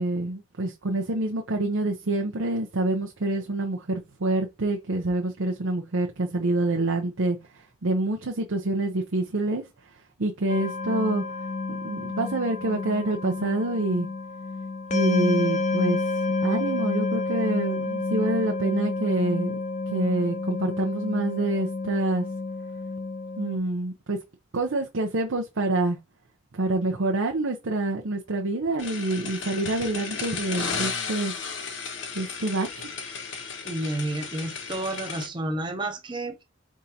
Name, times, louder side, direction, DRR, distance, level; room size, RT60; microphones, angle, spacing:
voice 1, 0.0-7.4 7.8-9.6 10.2-11.2 11.7-14.1 14.9-16.0 16.4-19.6 19.9-22.3 23.4-24.2 24.5-26.0 26.5-31.3 32.1-32.9, right 2 dB, 90° right, 0.7 m, -26 dB
sound 1, 10.5-23.6, left 3 dB, 35° left, 0.5 m, -29 dB
sound 2, 28.8-35.3, left 5 dB, 70° left, 1.2 m, -34 dB
voice 2, 33.6-36.4, right 1 dB, 25° right, 0.6 m, -30 dB
5.1 x 3.6 x 2.8 m
head